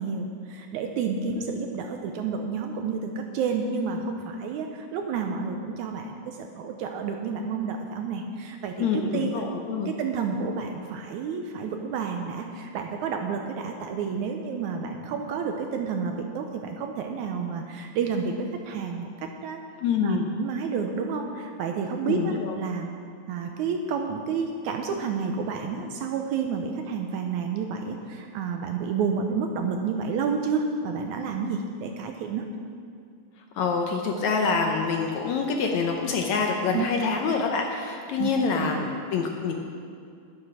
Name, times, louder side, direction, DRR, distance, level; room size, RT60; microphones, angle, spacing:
voice 1, 0.0-9.4 10.0-19.6 20.0-22.9 23.3-32.4 36.7-36.9 38.2-38.3 38.6-38.9, right 5 dB, 75° right, 4 dB, 1.9 m, -30 dB
voice 2, 8.8-9.9 19.8-20.3 22.1-22.6 33.5-39.5, left 5 dB, 70° left, 2 dB, 1.8 m, -26 dB
11.0 x 9.7 x 6.0 m, 2.4 s
omnidirectional pair, 3.9 m